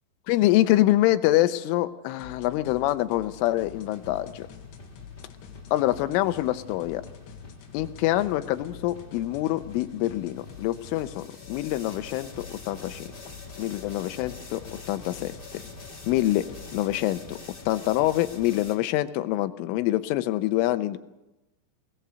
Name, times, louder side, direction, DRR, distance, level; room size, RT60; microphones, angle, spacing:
voice 1, 0.3-4.5 5.7-7.1 7.7-13.1 13.6-15.3 16.1-16.5 16.7-17.4 17.7-21.0, left 15 dB, 85° left, 10 dB, 3.4 m, -25 dB
sound 1, 2.2-17.0, left 8 dB, 65° left, 3.7 m, -47 dB
sound 2, 3.7-18.7, left 3 dB, 50° left, 0.6 m, -46 dB
21.5 x 20.0 x 6.9 m, 1.0 s
omnidirectional pair, 5.6 m